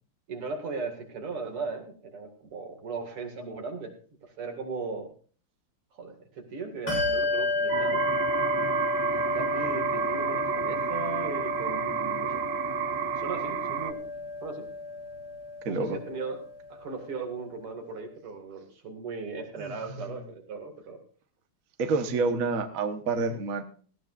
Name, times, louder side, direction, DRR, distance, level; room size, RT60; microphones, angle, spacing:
voice 1, 0.3-3.9 4.2-5.1 5.9-8.1 9.1-12.4 13.2-14.0 14.4-14.7 15.6-16.4 16.7-21.0, right 4 dB, 85° right, 4 dB, 3.1 m, -37 dB
Bell, 6.9-16.9, left 3 dB, 45° left, 8.8 m, -32 dB
sound 1, 7.7-13.9, right 11 dB, 70° right, 1.3 m, -31 dB
voice 2, 15.6-16.0 19.6-20.1 21.8-23.6, right 3 dB, 45° right, 7 dB, 1.4 m, -28 dB
17.5 x 15.5 x 2.5 m, 0.42 s
omnidirectional pair, 2.4 m